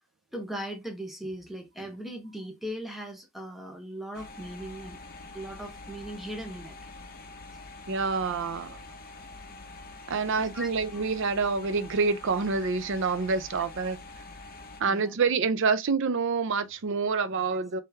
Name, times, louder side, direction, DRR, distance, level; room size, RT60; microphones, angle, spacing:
voice 1, 0.3-5.0 5.3-6.8 7.6-7.7 10.4-11.0 14.9-15.2, right 1 dB, ahead, 0.8 m, -39 dB
sound 1, 4.1-14.8, left 3 dB, 40° left, 0.6 m, -45 dB
voice 2, 7.9-8.8 10.1-14.0 14.8-17.8, right 4 dB, 55° right, 0.5 m, -27 dB
3.6 x 3.4 x 2.7 m
head